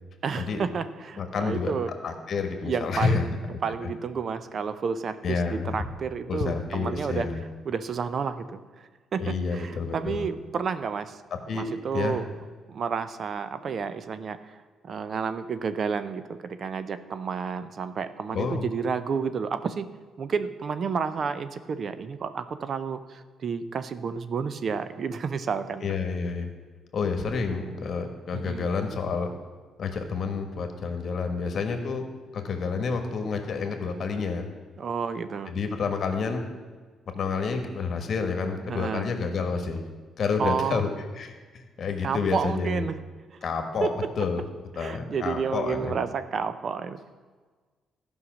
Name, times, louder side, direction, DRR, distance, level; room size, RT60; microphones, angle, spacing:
voice 1, 0.2-1.9 2.6-7.3 7.7-11.2 11.5-12.2 12.7-14.6 14.8-19.8 20.2-25.9 28.3-28.7 34.8-35.5 38.7-39.1 40.4-40.8 42.0-43.0 43.3-43.4 43.8-43.9 44.8-47.1, right 6 dB, 50° right, 12 dB, 0.6 m, -31 dB
voice 2, 1.2-1.7 2.0-3.3 5.2-5.8 6.3-7.4 9.2-10.2 11.5-11.7 11.9-12.2 18.3-18.7 25.8-26.5 26.9-29.3 29.8-32.1 32.3-34.5 35.5-36.4 37.1-39.8 40.2-40.9 41.2-42.8 43.4-44.4 44.7-45.9, left 5 dB, 55° left, 5 dB, 1.5 m, -29 dB
13.0 x 5.6 x 6.2 m, 1.4 s
cardioid pair, 90°, 0 cm